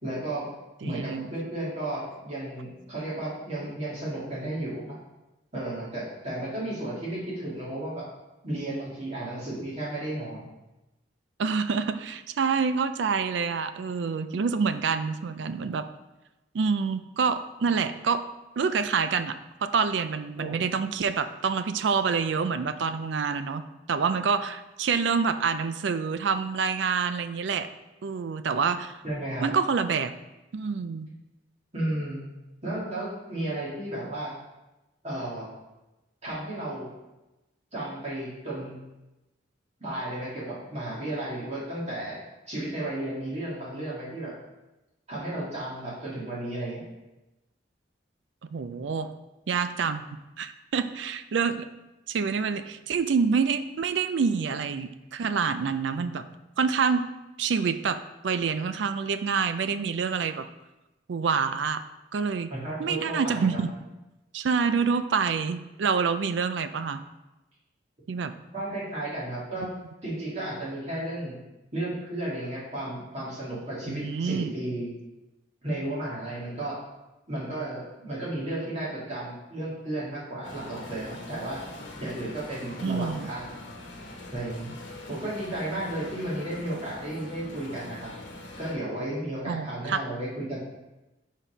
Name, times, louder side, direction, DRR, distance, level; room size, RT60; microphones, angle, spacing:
voice 1, 0.0-0.5 0.8-4.9 5.5-8.0 8.4-10.5 20.4-20.6 29.0-29.5 31.7-32.2 32.6-34.3 35.0-35.5 36.2-36.9 37.7-38.7 39.8-42.2 42.5-44.3 45.1-46.8 62.5-63.6 68.5-69.7 70.0-71.3 71.7-74.9 75.6-76.8 77.3-81.6 82.0-83.6 84.3-84.7 85.1-88.1 88.6-90.6, right 1 dB, 35° right, -7 dB, 2.3 m, -33 dB
voice 2, 0.8-1.3 11.4-15.8 16.5-18.2 18.6-23.6 23.9-27.7 28.0-28.9 29.4-30.1 30.5-31.1 39.9-40.0 48.5-49.1 49.5-51.7 52.1-56.2 56.6-57.0 57.4-58.0 58.2-60.5 61.1-61.8 62.1-62.5 62.8-63.7 64.3-67.0 68.1-68.3 73.9-74.5 82.8-83.3 89.5-90.0, right 5 dB, 70° right, 11 dB, 0.4 m, -27 dB
sound 1, 80.4-88.8, left 1 dB, 75° left, 1.1 m, -43 dB
6.1 x 4.1 x 5.0 m, 1.0 s
head